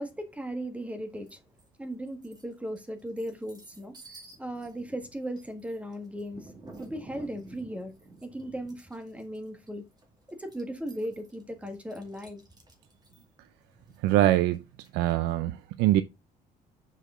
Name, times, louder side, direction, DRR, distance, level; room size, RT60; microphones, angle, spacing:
voice 1, 0.0-1.4 1.8-3.9 4.4-6.5 6.8-7.9 8.2-9.8 10.3-12.4, right 1 dB, 10° right, 1.6 m, -37 dB
sound 1, 1.3-1.7 2.1-15.3, right 2 dB, 25° right, 2.2 m, -52 dB
voice 2, 14.0-14.6 14.9-16.0, right 14 dB, 90° right, 0.5 m, -23 dB
6.5 x 5.0 x 3.7 m
cardioid pair, 110°, 17 cm